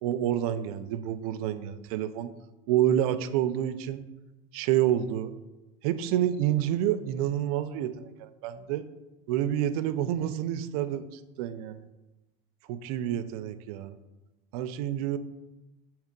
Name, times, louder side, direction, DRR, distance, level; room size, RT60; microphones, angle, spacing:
voice 1, 0.0-2.3 2.7-4.0 4.5-5.3 5.8-8.8 9.3-11.8 12.7-13.9 14.5-15.2, right 11 dB, 85° right, 11 dB, 0.4 m, -28 dB
6.5 x 2.9 x 5.1 m, 1.0 s
cardioid pair, 150°, 18 cm